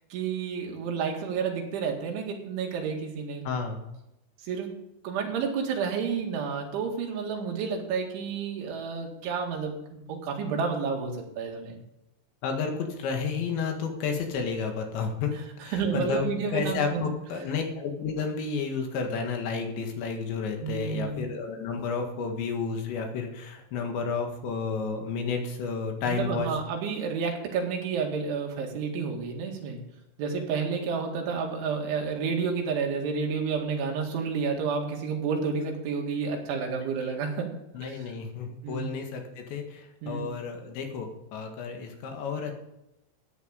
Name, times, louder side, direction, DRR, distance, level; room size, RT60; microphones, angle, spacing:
voice 1, 0.1-3.4 4.4-4.7 5.0-11.8 15.7-17.1 20.6-21.3 26.1-29.8 30.2-37.5 37.8-38.0 38.6-38.9 40.0-40.3, right 5 dB, 75° right, 1 dB, 4.5 m, -30 dB
voice 2, 3.5-3.8 12.4-15.4 15.6-16.2 16.5-26.5 37.0-37.1 37.7-42.6, left 5 dB, 70° left, 3 dB, 4.0 m, -31 dB
14.0 x 9.6 x 5.2 m, 0.87 s
omnidirectional pair, 5.5 m